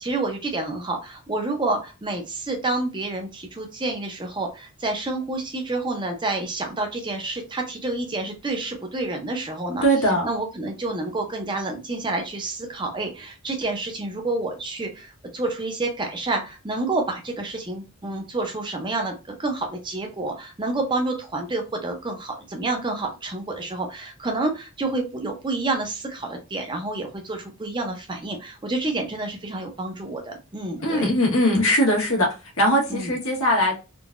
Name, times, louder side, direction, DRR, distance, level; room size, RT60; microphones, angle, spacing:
voice 1, 0.0-9.8 10.2-31.1 32.9-33.1, right 2 dB, 20° right, 3 dB, 0.6 m, -29 dB
voice 2, 9.8-10.3 30.8-32.3 32.6-33.7, equal, 70° left, -1 dB, 1.4 m, -20 dB
3.7 x 2.5 x 2.3 m, 0.28 s
head